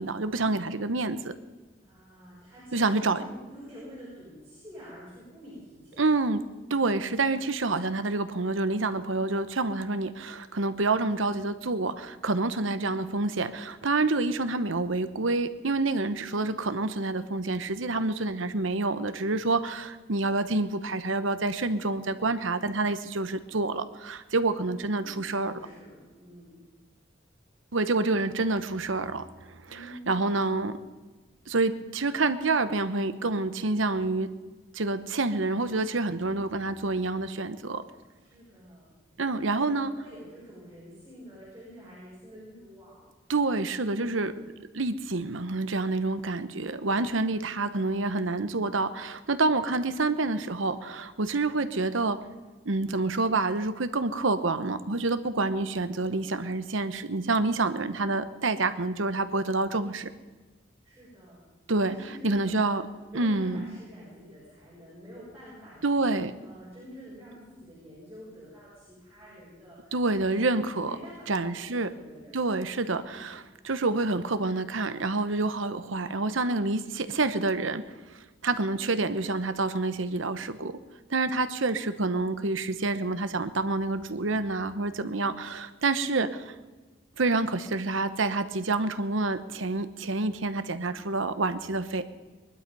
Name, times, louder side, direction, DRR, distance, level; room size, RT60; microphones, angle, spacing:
voice 1, 0.0-1.3 2.7-3.2 6.0-6.4 6.7-25.5 27.7-29.2 29.7-29.8 30.1-30.8 31.5-34.3 34.7-37.8 39.2-39.9 43.3-44.3 44.7-52.2 52.6-60.1 61.7-61.9 62.2-62.8 63.1-63.8 65.8-66.3 69.9-71.0 71.3-71.9 72.3-77.8 78.4-80.8 81.1-86.5 87.2-92.0, right 3 dB, 80° right, 11 dB, 1.0 m, -28 dB
voice 2, 1.8-6.0 18.0-18.3 24.6-26.6 29.7-30.5 38.1-38.9 39.2-43.1 43.9-44.4 46.8-47.4 49.4-49.9 60.8-61.4 61.8-62.8 63.1-66.1 66.4-72.4 73.0-73.4, equal, 10° right, -10 dB, 6.6 m, -48 dB
21.5 x 12.0 x 5.5 m, 1.3 s
head